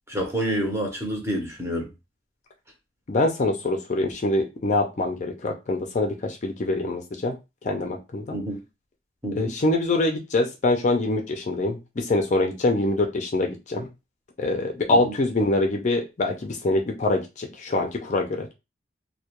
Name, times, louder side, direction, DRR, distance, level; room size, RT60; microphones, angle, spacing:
voice 1, 0.1-1.9 8.3-8.6 9.2-9.5 14.9-15.1, equal, 15° right, 0.7 m, -28 dB
voice 2, 3.1-7.3 7.6-8.4 9.3-13.9 14.4-18.5, left 2 dB, 40° left, 0.4 m, -24 dB
2.2 x 2.1 x 2.9 m
head